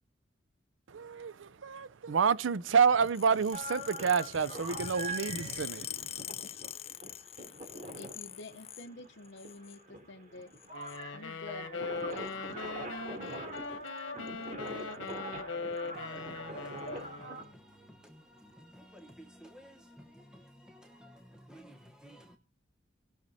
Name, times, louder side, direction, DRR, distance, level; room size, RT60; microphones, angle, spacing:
voice 1, 0.9-6.1, right 6 dB, 80° right, 0.5 m, -29 dB
sound 1, 3.0-8.9 9.2-9.8 10.5-11.0 12.1-12.3 13.3-13.6 13.9-14.0 14.3-14.4 14.7-15.1 15.8-15.9 16.8-16.9, left 11 dB, 30° left, 0.4 m, -44 dB
sound 2, 3.5-17.4, right 1 dB, 40° right, 2.8 m, -43 dB
voice 2, 8.0-10.5 11.1-12.6, left 2 dB, 65° left, 0.9 m, -49 dB
sound 3, 10.7-17.5, left 4 dB, 85° left, 1.2 m, -41 dB
voice 3, 15.9-22.4, equal, 5° right, 1.0 m, -54 dB
19.0 x 6.6 x 4.2 m
head